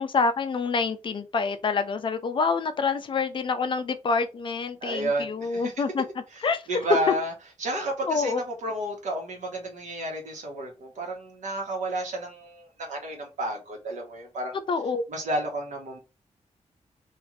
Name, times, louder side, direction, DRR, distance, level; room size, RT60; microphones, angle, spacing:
voice 1, 0.0-6.0 6.4-6.6 8.0-8.4 14.7-15.0, left 4 dB, 40° left, 0.4 m, -27 dB
voice 2, 4.8-5.7 6.3-6.4 6.7-7.3 7.6-14.6 15.1-16.0, right 1 dB, 85° right, 1.1 m, -31 dB
2.5 x 2.5 x 3.1 m
wide cardioid pair, 170°, 12 cm